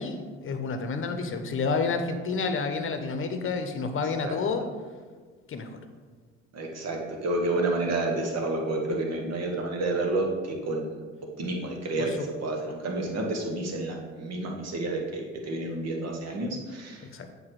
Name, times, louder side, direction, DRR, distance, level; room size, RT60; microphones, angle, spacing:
voice 1, 0.0-4.6 5.5-5.7 12.0-12.3 17.1-17.3, left 4 dB, 35° left, 7 dB, 1.0 m, -29 dB
voice 2, 6.5-11.0 11.4-17.1, right 2 dB, 45° right, 1 dB, 1.7 m, -30 dB
7.4 x 4.8 x 4.8 m, 1.5 s
hypercardioid pair, 55°, 35 cm